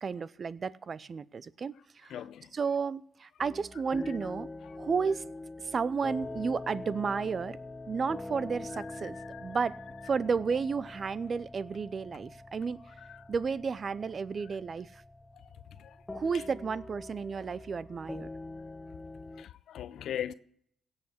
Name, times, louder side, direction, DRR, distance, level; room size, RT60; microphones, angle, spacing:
voice 1, 0.0-2.2 2.5-4.5 4.8-5.2 5.7-7.6 7.9-9.8 10.0-12.8 13.3-15.0 16.1-18.3, right 5 dB, 50° right, 0.5 m, -32 dB
voice 2, 2.1-2.5 4.1-4.2 4.6-4.8 8.7-9.6 13.0-13.2 15.3-15.4 15.8-16.0 16.3-16.4 19.4-20.3, left 10 dB, 70° left, 0.5 m, -41 dB
sound 1, 3.4-19.4, left 2 dB, 15° left, 0.9 m, -44 dB
16.5 x 5.7 x 8.2 m
supercardioid pair, 55°, 0 cm